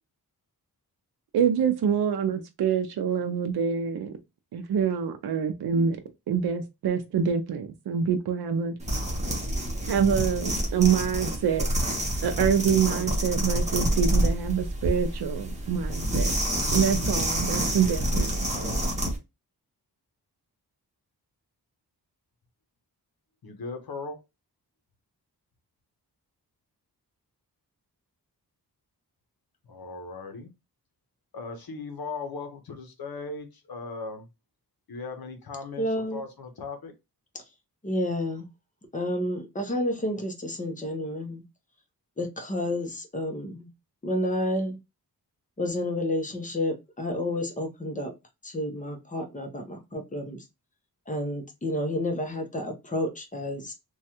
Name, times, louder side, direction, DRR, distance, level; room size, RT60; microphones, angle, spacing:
voice 1, 1.3-4.1 4.5-6.0 6.3-8.7 9.9-11.7 12.2-16.3 16.7-18.3, right 7 dB, 75° right, 0.5 m, -26 dB
sound 1, 8.8-19.2, right 1 dB, 20° right, 0.9 m, -27 dB
voice 2, 23.4-24.2 29.6-30.5 31.3-34.3 34.9-36.9, left 3 dB, 65° left, 0.8 m, -38 dB
voice 3, 35.8-36.2 37.3-37.4 37.8-38.5 38.9-41.4 42.2-43.7 44.0-44.8 45.6-48.1 48.4-50.4 51.1-53.7, left 1 dB, 20° left, 0.7 m, -30 dB
3.1 x 2.3 x 2.8 m
wide cardioid pair, 135°, 39 cm